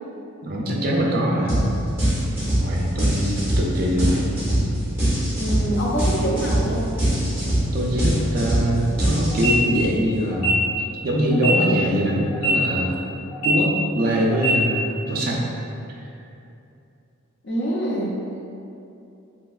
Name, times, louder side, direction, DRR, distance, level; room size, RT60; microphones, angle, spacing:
voice 1, 0.4-1.6 2.6-4.2 7.7-10.7 11.0-12.9 13.4-15.4, equal, 45° right, -2 dB, 0.4 m, -23 dB
sound 1, 1.5-1.7 2.0-9.8, right 1 dB, 10° right, 0.9 m, -22 dB
voice 2, 5.4-6.8 17.4-18.3, right 1 dB, 55° left, -3 dB, 0.5 m, -25 dB
sound 2, 9.3-9.5 10.3-10.5 11.3-11.5 12.3-12.5 13.3-13.5 14.3-14.5, right 5 dB, 85° left, 0.7 m, -23 dB
3.1 x 2.8 x 2.3 m, 2.7 s
head